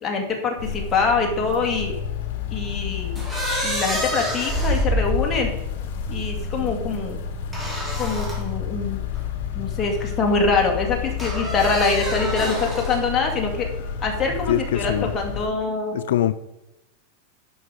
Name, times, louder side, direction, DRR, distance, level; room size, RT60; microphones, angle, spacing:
voice 1, 0.0-1.9 2.5-3.2 3.6-5.5 6.1-7.2 8.0-9.0 9.6-13.7 14.0-16.0, left 4 dB, 20° left, 1 dB, 2.2 m, -24 dB
sound 1, 0.6-15.5, left 7 dB, 60° left, 1.4 m, -30 dB
sound 2, 3.1-6.0 7.5-8.4 9.1-9.2 11.2-13.1, equal, 5° right, 2.7 m, -27 dB
voice 2, 14.5-15.1 15.9-16.3, left 11 dB, 85° left, 12 dB, 0.5 m, -22 dB
11.0 x 5.5 x 5.0 m, 0.96 s
supercardioid pair, 145°, 0 cm